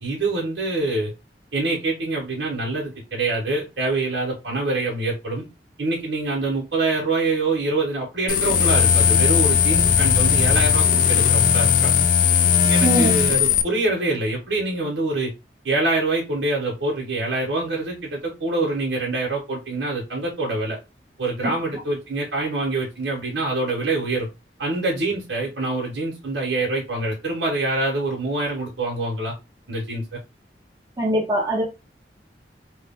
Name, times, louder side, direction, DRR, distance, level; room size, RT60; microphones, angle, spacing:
voice 1, 0.0-1.1 1.5-5.4 5.8-11.9 12.7-15.3 15.6-20.8 21.2-24.3 24.6-29.3 29.7-30.2, right 2 dB, 85° right, 1.3 m, -25 dB
sound 1, 8.3-13.6, left 7 dB, 50° left, 0.4 m, -18 dB
voice 2, 12.8-13.1 21.4-21.5 31.0-31.6, right 1 dB, 20° right, 0.9 m, -21 dB
3.2 x 2.3 x 3.7 m
head